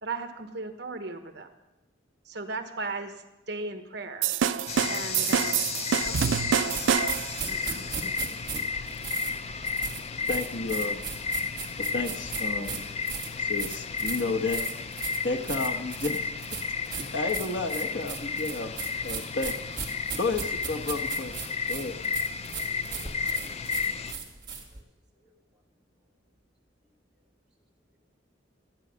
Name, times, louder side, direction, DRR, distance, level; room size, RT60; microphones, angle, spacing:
voice 1, 0.0-1.5 2.3-3.1 3.5-4.3 4.9-5.6 5.9-7.0 7.5-8.3, right 3 dB, 60° right, 7 dB, 1.1 m, -37 dB
sound 1, 4.2-7.4, right 8 dB, 80° right, 0.4 m, -26 dB
sound 2, 4.7-24.1, left 5 dB, 35° left, 0.4 m, -33 dB
sound 3, 6.0-24.8, right 6 dB, 25° right, 2.0 m, -37 dB
voice 2, 10.3-11.0 11.9-12.9 13.4-14.6 15.2-16.2 17.1-18.8 19.0-19.5 20.2-21.3 21.7-21.9, left 3 dB, 65° left, 4 dB, 1.1 m, -31 dB
voice 3, 23.4-23.9 24.2-24.4 24.7-24.8 25.1-25.6 26.8-27.3, right 1 dB, 5° right, -6 dB, 2.5 m, -68 dB
13.5 x 9.3 x 6.3 m, 0.98 s
head